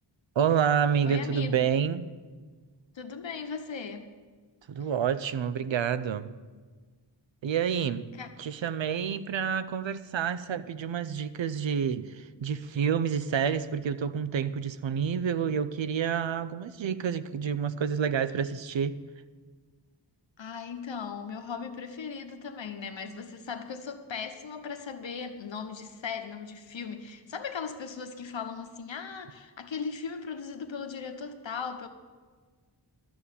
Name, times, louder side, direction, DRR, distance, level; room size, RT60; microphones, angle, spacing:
voice 1, 0.4-2.0 4.7-6.3 7.4-8.0 8.4-19.0, right 7 dB, 85° right, 0.6 m, -28 dB
voice 2, 1.0-1.7 2.9-4.1 8.1-8.3 20.4-31.9, left 6 dB, 90° left, 1.1 m, -38 dB
12.5 x 7.0 x 8.6 m
wide cardioid pair, 80°, 44 cm